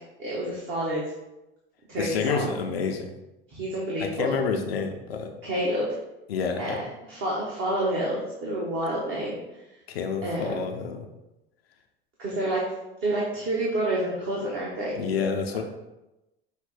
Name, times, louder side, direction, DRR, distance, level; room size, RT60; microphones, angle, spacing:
voice 1, 0.2-1.0 1.9-2.6 3.5-4.4 5.4-5.9 6.6-9.4 10.2-10.6 12.2-12.6 13.0-15.0, right 1 dB, 45° right, -5 dB, 1.2 m, -28 dB
voice 2, 2.0-3.1 4.0-5.3 6.3-6.8 9.9-11.1 14.9-15.6, left 5 dB, 80° left, 3 dB, 0.5 m, -28 dB
5.5 x 2.1 x 4.0 m, 0.97 s
figure-of-eight pair, 70°, 30 cm